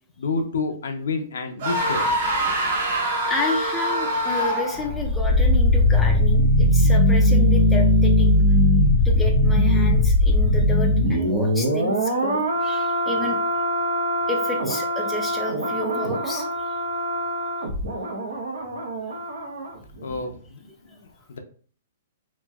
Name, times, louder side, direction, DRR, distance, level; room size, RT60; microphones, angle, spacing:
voice 1, 0.2-2.2 20.0-20.6 20.9-21.4, left 3 dB, 80° left, 5 dB, 0.5 m, -29 dB
sound 1, 1.6-5.0, right 1 dB, 45° right, 0.7 m, -24 dB
voice 2, 3.3-8.3 9.0-13.4 14.3-16.7 19.0-19.1, left 2 dB, 5° left, -1 dB, 0.3 m, -30 dB
sound 2, 4.8-19.7 20.0-20.2, left 1 dB, 85° right, 0.9 m, -20 dB
3.0 x 2.6 x 2.3 m, 0.44 s
hypercardioid pair, 170°, 0 cm